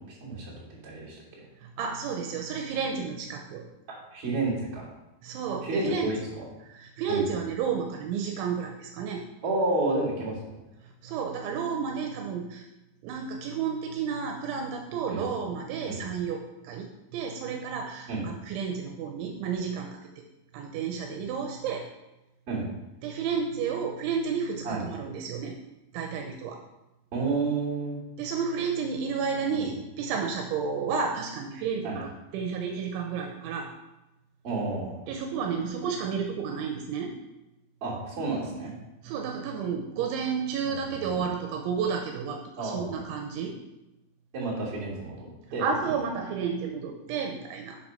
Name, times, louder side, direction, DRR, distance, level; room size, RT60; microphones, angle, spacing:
voice 1, 0.2-0.5 0.8-1.2 4.1-4.9 5.6-6.4 7.1-7.2 9.4-10.5 15.1-15.2 15.9-16.0 18.1-18.2 22.5-22.7 24.6-24.8 27.1-28.0 29.4-29.6 31.8-32.0 34.4-35.0 37.8-38.7 40.7-41.2 42.6-43.0 44.3-45.9, right 2 dB, 35° right, -6 dB, 3.8 m, -30 dB
voice 2, 1.6-3.6 5.2-6.1 6.7-9.2 11.0-12.6 13.0-16.9 17.1-20.0 20.5-21.8 23.0-25.6 25.9-26.6 28.2-33.7 35.1-37.1 39.0-43.5 45.6-47.8, right 6 dB, 80° right, 2 dB, 3.1 m, -31 dB
7.3 x 6.6 x 5.7 m, 0.96 s
omnidirectional pair, 5.4 m